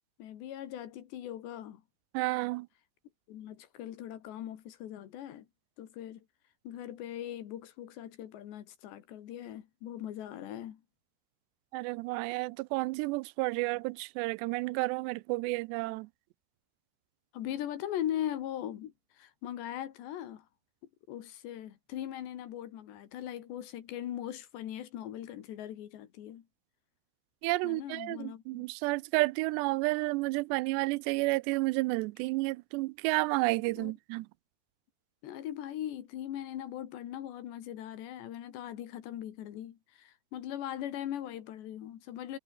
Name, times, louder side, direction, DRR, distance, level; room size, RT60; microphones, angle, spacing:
voice 1, 0.2-1.8 3.3-5.5 5.8-6.2 6.7-10.8 17.3-20.5 21.1-26.4 27.6-28.7 33.8-33.9 35.2-42.4, left 11 dB, 90° left, 4.3 m, -40 dB
voice 2, 2.1-2.7 11.7-16.1 27.4-34.3, right 23 dB, 85° right, 2.8 m, -31 dB
omnidirectional pair, 4.8 m